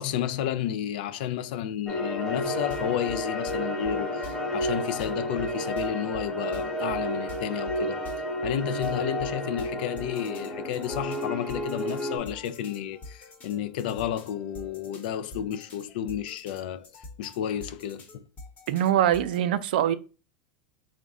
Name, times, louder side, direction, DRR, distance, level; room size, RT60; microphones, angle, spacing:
voice 1, 0.0-8.0 8.4-18.2, left 10 dB, 75° left, 0.4 m, -32 dB
sound 1, 1.9-12.2, equal, 5° left, 1.0 m, -31 dB
sound 2, 2.4-19.4, left 2 dB, 30° left, 1.0 m, -47 dB
voice 2, 18.7-20.0, right 11 dB, 80° right, 0.3 m, -23 dB
3.6 x 2.1 x 3.6 m
supercardioid pair, 115°, 5 cm